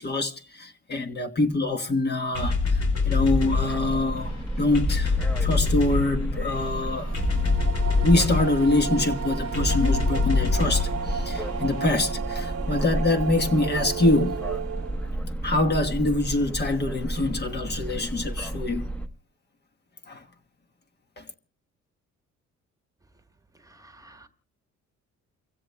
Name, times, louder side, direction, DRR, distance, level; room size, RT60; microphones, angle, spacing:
voice 1, 0.0-7.2 8.0-14.4 15.4-18.9 20.1-20.2 21.2-21.3, left 2 dB, 35° left, 1.2 m, -25 dB
sound 1, 2.3-11.9, left 4 dB, 75° left, 5.5 m, -26 dB
sound 2, 3.2-19.1, right 1 dB, 5° left, 1.0 m, -32 dB
sound 3, 7.0-15.2, right 7 dB, 55° right, 0.9 m, -34 dB
voice 2, 23.6-24.3, right 2 dB, 10° right, 1.2 m, -51 dB
29.5 x 16.0 x 2.2 m
cardioid pair, 100°, 29 cm